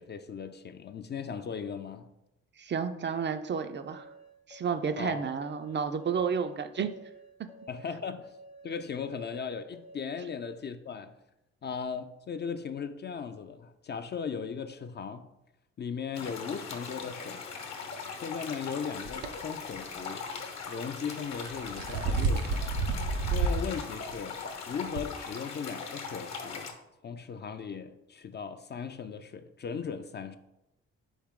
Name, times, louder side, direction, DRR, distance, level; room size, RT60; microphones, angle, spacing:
voice 1, 0.0-2.1 5.0-5.2 7.7-8.3 8.6-11.1 11.6-15.3 15.8-17.5 18.2-20.3 20.7-22.7 23.3-26.7 27.0-30.4, left 6 dB, 35° left, 0.4 m, -37 dB
voice 2, 2.6-4.0 4.5-6.9, right 6 dB, 35° right, 0.4 m, -31 dB
sound 1, 3.7-10.3, right 1 dB, 90° left, 0.9 m, -52 dB
sound 2, 16.1-26.7, left 5 dB, 55° left, 0.9 m, -40 dB
sound 3, 19.0-19.3 21.3-23.7 24.1-24.2 25.0-25.1, right 4 dB, 85° right, 0.5 m, -29 dB
4.0 x 3.5 x 3.6 m
supercardioid pair, 50°, 31 cm